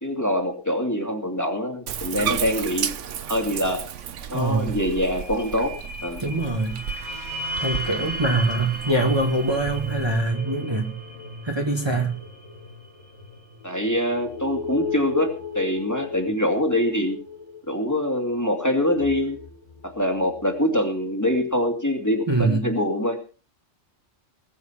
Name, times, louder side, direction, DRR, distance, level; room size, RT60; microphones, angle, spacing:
voice 1, 0.0-2.9 3.3-3.8 4.3-6.2 13.6-17.2 17.7-19.4 19.8-23.2, left 1 dB, 15° left, 4 dB, 2.6 m, -24 dB
Bathtub (filling or washing), 1.9-10.2, right 8 dB, 80° right, 1.2 m, -34 dB
sound 1, 4.2-4.3 4.6-20.5 21.0-21.1, left 2 dB, 90° left, 3.6 m, -36 dB
voice 2, 4.3-4.8 6.2-6.8 7.6-11.0 11.4-12.2 22.3-22.7, right 2 dB, 20° right, 2 dB, 1.9 m, -23 dB
sound 2, 6.3-13.9, right 4 dB, 65° right, 2.2 m, -43 dB
20.0 x 8.0 x 5.8 m, 0.37 s
omnidirectional pair, 1.2 m